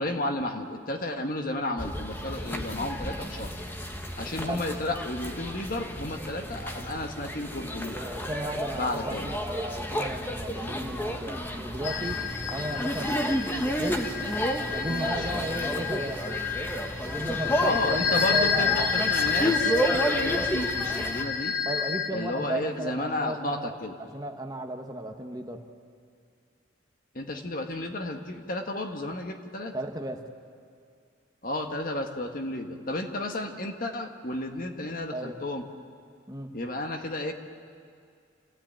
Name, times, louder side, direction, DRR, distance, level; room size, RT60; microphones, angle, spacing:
voice 1, 0.0-3.5 4.2-8.0 8.7-9.3 14.9-15.3 17.6-21.6 22.1-23.9 27.1-29.7 31.4-35.7 36.5-37.3, left 1 dB, 45° left, 4 dB, 1.6 m, -32 dB
sound 1, 1.8-21.2, equal, 10° left, 1.3 m, -31 dB
voice 2, 7.9-12.2 12.5-13.5 13.8-14.0 14.7-16.2 17.0-19.0 21.6-25.6 29.7-30.2 35.1-35.3 36.3-36.5, right 1 dB, 20° right, 4 dB, 1.2 m, -35 dB
sound 2, 11.8-22.1, left 6 dB, 85° left, 1.5 m, -30 dB
28.0 x 16.0 x 8.9 m, 2.3 s
head